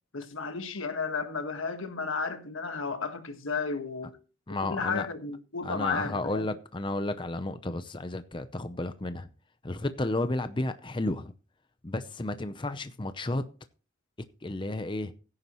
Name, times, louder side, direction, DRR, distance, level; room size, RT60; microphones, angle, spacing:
voice 1, 0.1-4.2 4.6-6.5, left 4 dB, 90° left, 1.6 m, -33 dB
voice 2, 4.5-5.1 5.6-9.3 9.6-11.3 11.8-13.4 14.4-15.1, left 2 dB, 25° left, 0.6 m, -32 dB
16.0 x 9.7 x 3.1 m
head